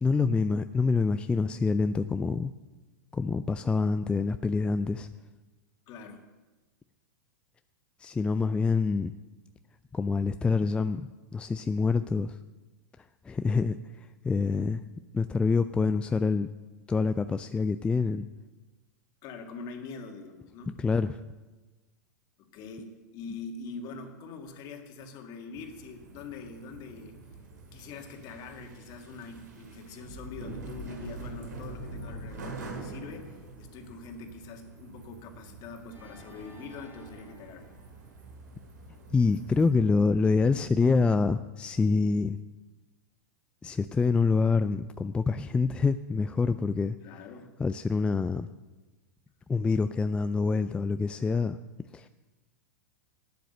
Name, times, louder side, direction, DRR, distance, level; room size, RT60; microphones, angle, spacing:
voice 1, 0.0-2.5 3.1-5.1 8.0-9.1 9.9-12.4 13.0-14.8 15.1-16.5 16.9-18.3 20.8-21.2 39.1-42.4 43.6-47.0 47.6-48.5 49.5-51.6 51.9-52.1, left 4 dB, 10° left, 10 dB, 0.3 m, -26 dB
voice 2, 5.9-6.2 19.2-20.8 22.5-27.2 27.7-37.7 47.0-47.5, left 4 dB, 45° left, 4 dB, 2.0 m, -43 dB
sound 1, 25.5-39.7, right 2 dB, 85° right, 2.4 m, -45 dB
Organ, 35.9-39.0, right 1 dB, 20° right, 3.7 m, -53 dB
11.5 x 9.3 x 6.7 m, 1.2 s
hypercardioid pair, 115°, 10 cm